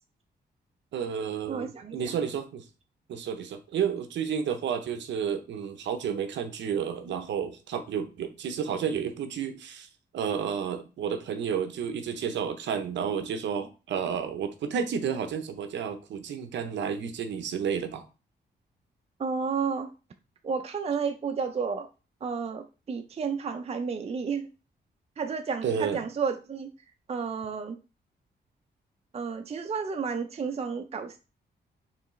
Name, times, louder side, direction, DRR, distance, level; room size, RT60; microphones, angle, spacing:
voice 1, 0.9-2.6 3.1-9.9 10.1-18.0 25.6-26.0, right 7 dB, 85° right, 0.6 m, -31 dB
voice 2, 1.5-2.2 19.2-19.9 20.4-21.9 22.2-24.5 25.2-26.7 27.1-27.8 29.1-31.2, right 5 dB, 35° right, 0.5 m, -31 dB
4.6 x 3.1 x 3.1 m
cardioid pair, 80°, 18 cm